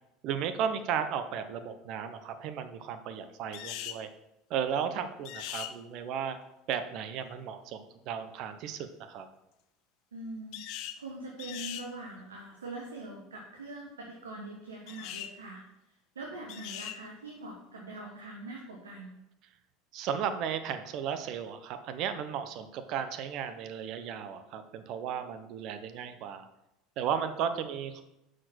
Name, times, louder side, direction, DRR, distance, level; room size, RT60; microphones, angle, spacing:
voice 1, 0.2-4.1 4.5-6.4 6.7-9.3 19.9-26.5 27.0-28.0, right 8 dB, 55° right, 9 dB, 0.8 m, -35 dB
sound 1, 3.5-4.0 5.3-5.7 10.5-11.0 11.4-11.9 14.9-15.3 16.5-17.0, left 11 dB, 60° left, 0.6 m, -40 dB
voice 2, 10.1-15.6 16.1-19.2, right 2 dB, 90° right, -1 dB, 1.1 m, -43 dB
6.0 x 5.0 x 6.2 m, 0.90 s
hypercardioid pair, 80°, 0 cm